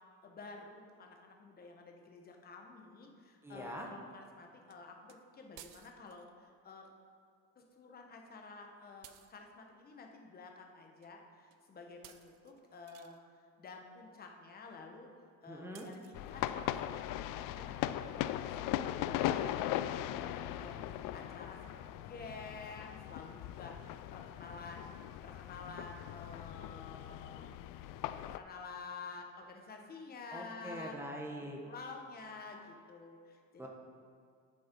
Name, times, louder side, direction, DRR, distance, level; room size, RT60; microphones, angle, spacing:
voice 1, 0.2-6.9 7.6-13.2 13.6-15.1 15.4-16.9 17.2-18.0 18.3-21.6 21.9-24.9 25.2-27.5 28.2-31.0 31.4-33.7, left 4 dB, 30° left, 2 dB, 1.1 m, -50 dB
voice 2, 3.4-3.9 15.5-15.9 30.3-31.6 33.6-33.7, equal, 5° right, 0 dB, 1.0 m, -43 dB
sound 1, 4.7-4.8 5.1-5.2 5.5-6.3 9.0-9.4 11.0-11.1 11.5-11.6 12.0-13.2 15.7-16.3, right 12 dB, 75° right, 0.6 m, -57 dB
sound 2, 16.1-28.4, left 12 dB, 75° left, 0.5 m, -39 dB
11.5 x 6.3 x 4.5 m, 2.4 s
cardioid pair, 165°, 33 cm